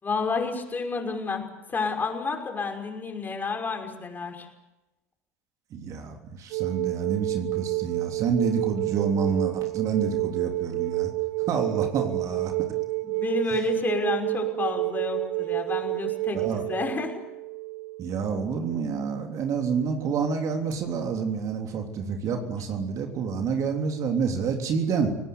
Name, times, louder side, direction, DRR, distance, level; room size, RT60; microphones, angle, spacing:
voice 1, 0.0-4.5 13.0-17.1, left 4 dB, 25° left, 4 dB, 5.8 m, -30 dB
voice 2, 5.7-11.1 11.5-12.5 16.3-16.7 18.0-25.2, right 5 dB, 45° right, 4 dB, 3.4 m, -28 dB
sound 1, 6.5-18.9 20.7-20.8, right 24 dB, 60° right, 0.9 m, -30 dB
30.0 x 18.5 x 8.1 m, 0.99 s
hypercardioid pair, 80°, 8 cm